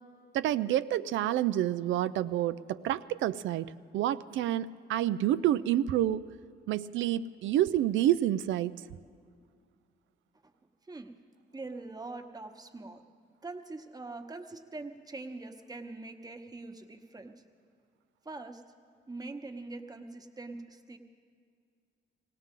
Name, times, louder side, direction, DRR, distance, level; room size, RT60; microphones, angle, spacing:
voice 1, 0.3-6.3 6.7-8.7, right 12 dB, 75° right, 14 dB, 0.4 m, -28 dB
voice 2, 11.5-13.0 13.4-17.4 18.2-18.6 19.1-21.0, right 3 dB, 20° right, 5 dB, 1.1 m, -43 dB
18.0 x 18.0 x 3.7 m, 2.2 s
cardioid pair, 90°, 20 cm